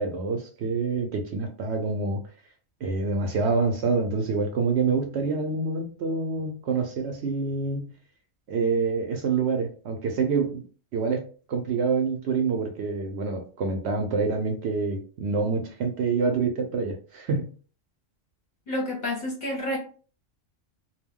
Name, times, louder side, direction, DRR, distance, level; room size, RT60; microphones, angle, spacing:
voice 1, 0.0-2.2 2.8-7.9 8.5-10.6 10.9-17.5, right 4 dB, 65° right, 4 dB, 0.7 m, -26 dB
voice 2, 18.7-19.8, left 1 dB, 45° left, -3 dB, 0.7 m, -29 dB
2.3 x 2.1 x 3.5 m, 0.40 s
omnidirectional pair, 1.3 m